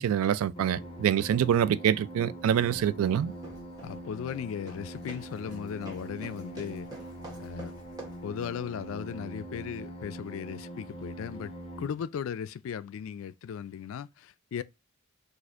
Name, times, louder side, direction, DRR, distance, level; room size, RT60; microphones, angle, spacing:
voice 1, 0.0-3.3, right 9 dB, 85° right, 0.3 m, -25 dB
sound 1, 0.5-11.9, right 1 dB, 30° left, 0.8 m, -43 dB
sound 2, 2.4-8.3, right 1 dB, 20° right, 0.9 m, -48 dB
voice 2, 3.8-6.9 7.4-7.7 8.2-11.5 11.8-14.6, left 8 dB, 70° left, 0.3 m, -37 dB
4.2 x 2.5 x 2.4 m
head